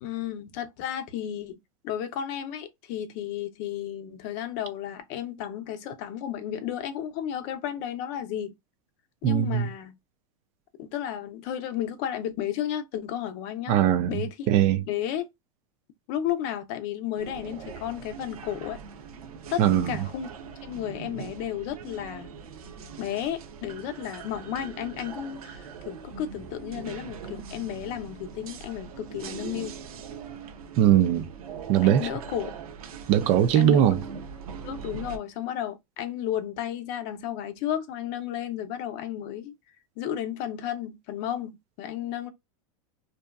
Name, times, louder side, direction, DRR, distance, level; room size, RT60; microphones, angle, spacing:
voice 1, 0.0-1.6 1.8-8.5 9.2-10.0 10.8-13.8 14.1-14.5 14.9-15.3 16.1-18.8 19.5-20.3 20.6-22.3 23.0-29.8 31.8-32.5 33.6-33.8 34.6-39.5 40.0-42.3, left 10 dB, 45° left, 0.6 m, -33 dB
voice 2, 9.2-9.7 13.7-14.8 19.6-19.9 30.8-31.3 31.7-32.1 33.1-34.0, right 10 dB, 40° right, 0.4 m, -21 dB
sound 1, 17.2-35.2, right 6 dB, 85° right, 0.7 m, -41 dB
2.7 x 2.3 x 2.2 m
supercardioid pair, 135°, 18 cm